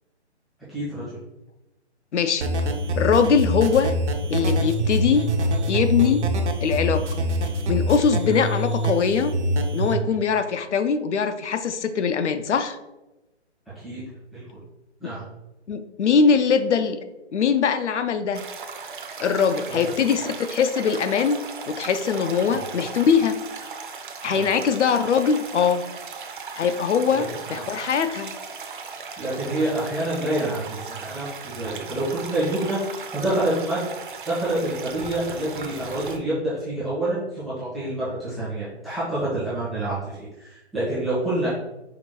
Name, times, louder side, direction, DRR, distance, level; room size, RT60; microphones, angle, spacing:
voice 1, 0.7-1.2 8.3-8.4 13.8-14.0 14.3-14.4 15.0-15.2 19.7-19.8 22.4-22.6 24.3-24.5 27.1-27.7 29.2-33.9 34.3-40.1 40.4-41.5, right 1 dB, ahead, -12 dB, 0.4 m, -27 dB
voice 2, 2.1-2.5 3.0-3.9 4.3-5.3 5.7-6.3 6.6-7.0 7.7-9.3 9.7-12.8 15.0-15.1 15.7-17.0 17.3-18.4 19.2-21.4 21.7-23.4 24.2-25.8 26.6-28.3, left 6 dB, 80° left, 9 dB, 0.6 m, -22 dB
sound 1, 2.4-9.9, equal, 80° right, 0.8 m, -24 dB
sound 2, 18.3-36.2, right 5 dB, 45° right, 0.5 m, -37 dB
4.9 x 2.2 x 4.4 m, 0.99 s
hypercardioid pair, 165°, 34 cm